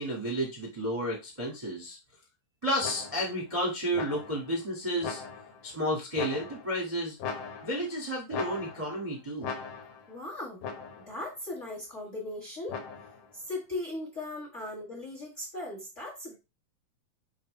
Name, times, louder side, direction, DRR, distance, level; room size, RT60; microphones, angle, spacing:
voice 1, 0.0-2.0 2.6-5.2 5.6-7.1 7.6-9.5, equal, 15° right, -3 dB, 1.1 m, -31 dB
sound 1, 2.8-3.4 3.9-4.5 5.0-5.7 6.2-6.8 7.2-8.0 8.3-9.0 9.4-10.1 10.6-11.2 12.7-13.3, left 5 dB, 85° left, 2.6 m, -39 dB
voice 2, 10.1-10.6 11.1-12.8 13.5-16.4, left 2 dB, 30° left, -1 dB, 1.6 m, -38 dB
5.8 x 5.1 x 3.2 m, 0.26 s
omnidirectional pair, 3.7 m